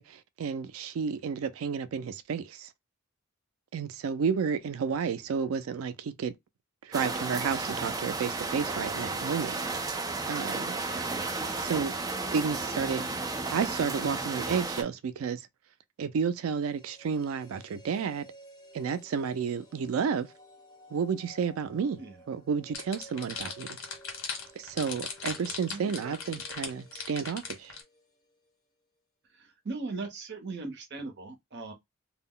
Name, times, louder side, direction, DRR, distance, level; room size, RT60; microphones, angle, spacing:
voice 1, 0.0-2.7 3.7-6.4 6.8-10.8 11.5-11.9 12.3-13.1 13.5-15.5 16.0-18.3 18.7-20.3 20.9-22.0 22.3-23.8 24.6-27.8, right 6 dB, 90° right, 0.4 m, -31 dB
sound 1, 6.9-14.8, right 3 dB, 20° right, 0.4 m, -33 dB
voice 2, 10.9-11.3 22.0-22.2 25.7-26.4 29.3-31.7, right 3 dB, 55° right, 0.7 m, -40 dB
sound 2, 16.4-28.6 28.8-28.9, equal, 20° left, 1.3 m, -55 dB
sound 3, 22.7-27.8, left 5 dB, 85° left, 1.0 m, -38 dB
2.2 x 2.0 x 3.6 m
head